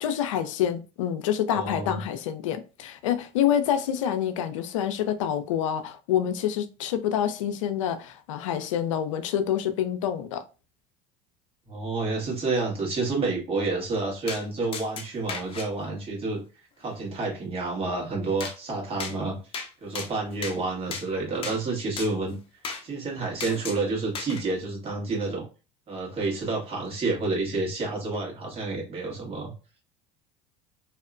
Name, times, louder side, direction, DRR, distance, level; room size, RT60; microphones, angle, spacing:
voice 1, 0.0-10.4, left 9 dB, 85° left, 0.4 m, -27 dB
voice 2, 1.5-1.9 11.7-16.4 16.8-19.4 19.8-22.4 22.8-25.5 25.9-29.5, right 3 dB, 35° right, 1.4 m, -29 dB
sound 1, 14.3-14.4 14.7-15.7 18.4-18.6 19.0-19.2 19.5-19.7 19.9-20.6 20.9-21.1 21.4-21.6 22.0-22.1 22.6-22.8 23.4-23.8 24.1-24.4, left 5 dB, 35° left, 0.6 m, -35 dB
2.8 x 2.1 x 2.4 m
hypercardioid pair, 90°, 16 cm